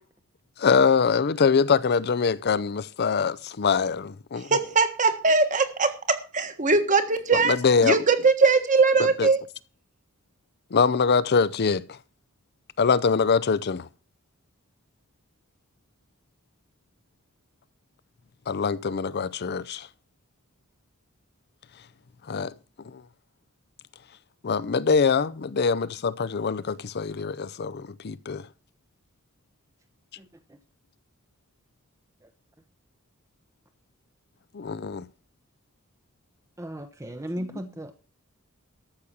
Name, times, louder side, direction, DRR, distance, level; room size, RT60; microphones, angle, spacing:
voice 1, 0.6-4.5 7.4-8.0 9.0-9.3 10.7-12.0 12.8-13.9 18.5-19.9 22.3-22.5 22.9-23.0 24.4-28.4 34.5-35.0, left 5 dB, 50° left, 0.5 m, -23 dB
voice 2, 4.5-7.6 7.8-9.4, right 4 dB, 35° right, 1.6 m, -21 dB
voice 3, 36.6-38.0, equal, 15° right, 0.8 m, -36 dB
13.5 x 6.3 x 7.2 m
head